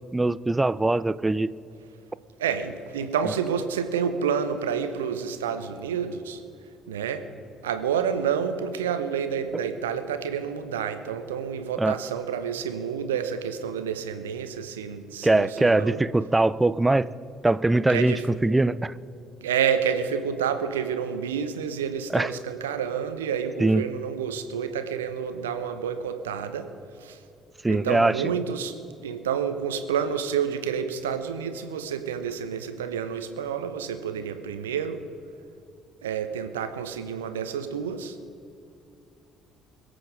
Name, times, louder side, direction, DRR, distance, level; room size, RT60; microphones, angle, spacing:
voice 1, 0.1-1.5 11.8-12.0 15.2-17.1 17.4-18.9 22.1-22.3 23.6-23.9 27.6-28.2, right 2 dB, 15° right, 18 dB, 0.4 m, -22 dB
voice 2, 2.4-6.4 6.9-7.2 7.6-16.0 17.9-18.2 19.4-26.7 27.0-27.2 27.6-28.7 29.0-35.0 36.0-38.2, right 7 dB, 75° right, 10 dB, 0.8 m, -29 dB
22.0 x 7.8 x 5.0 m, 2.7 s
figure-of-eight pair, 50°, 0 cm